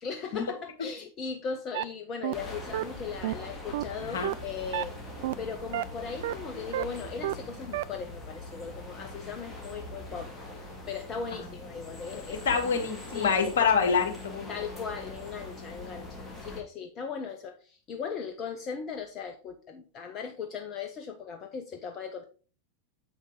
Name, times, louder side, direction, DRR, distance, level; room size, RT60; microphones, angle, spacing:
voice 1, 0.0-5.0 5.4-10.3 10.8-12.5 13.1-13.9 14.5-22.2, left 6 dB, 30° left, 5 dB, 1.0 m, -38 dB
sound 1, 1.7-1.8 2.2-2.3 2.7-2.8 3.2-3.3 3.7-3.8 4.2-4.3 4.7-4.8 5.2-5.3 5.7-5.8 6.2-6.3 6.7-6.8 7.2-7.3 7.7-7.8, right 15 dB, 55° right, 0.4 m, -29 dB
sound 2, 2.3-16.6, left 1 dB, 10° left, 2.6 m, -42 dB
voice 2, 12.5-14.5, left 6 dB, 60° left, 4 dB, 2.0 m, -26 dB
7.6 x 6.4 x 3.7 m, 0.36 s
figure-of-eight pair, 90°, 0 cm